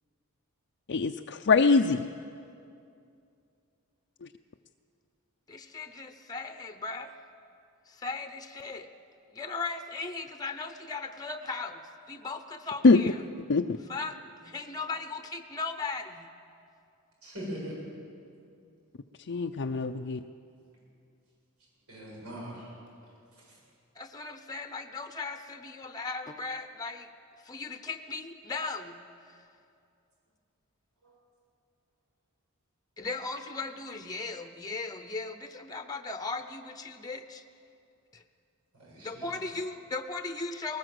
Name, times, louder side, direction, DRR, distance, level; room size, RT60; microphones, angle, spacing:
voice 1, 0.9-2.0 12.8-13.0 13.5-13.8 19.3-20.2, left 4 dB, 55° left, 3 dB, 0.5 m, -23 dB
voice 2, 5.5-7.1 7.9-8.9 9.3-13.2 13.9-14.2 14.4-16.3 23.9-27.1 27.4-29.0 29.3-29.4 33.0-37.4 38.1-38.2 39.0-40.8, left 3 dB, 15° left, 7 dB, 0.8 m, -37 dB
voice 3, 17.2-17.7 21.9-22.7 23.4-23.5 31.0-31.1 38.7-39.3, equal, 90° right, -4 dB, 7.7 m, -41 dB
19.5 x 19.0 x 7.8 m, 2.5 s
head